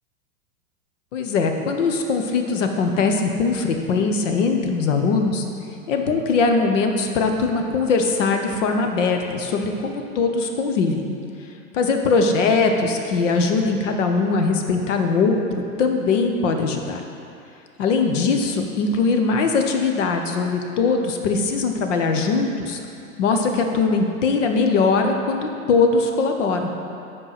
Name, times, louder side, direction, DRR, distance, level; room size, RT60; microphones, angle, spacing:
voice 1, 1.1-5.4 5.9-11.0 11.7-17.0 17.8-22.8 23.2-26.7, left 4 dB, 60° left, 4 dB, 1.0 m, -21 dB
7.8 x 4.7 x 5.8 m, 2.6 s
hypercardioid pair, 100°, 41 cm